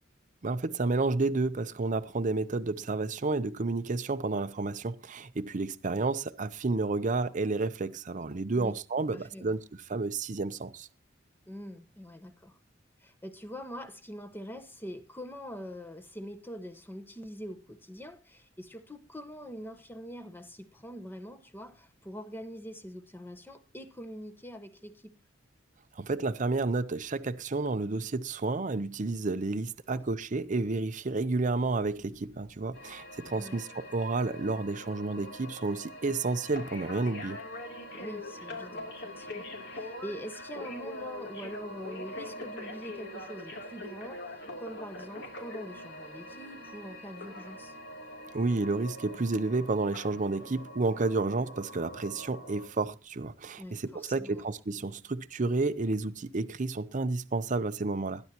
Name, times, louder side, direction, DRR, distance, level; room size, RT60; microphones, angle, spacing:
voice 1, 0.4-9.6 9.9-10.9 26.0-37.4 48.3-58.2, right 3 dB, 40° right, 0.6 m, -31 dB
voice 2, 9.1-9.6 11.5-12.6 13.0-25.1 29.9-30.0 33.4-33.6 38.0-47.7 53.6-54.5, equal, 10° left, 1.0 m, -44 dB
sound 1, 32.7-52.7, left 1 dB, 60° left, 3.0 m, -43 dB
20.5 x 10.5 x 2.9 m
head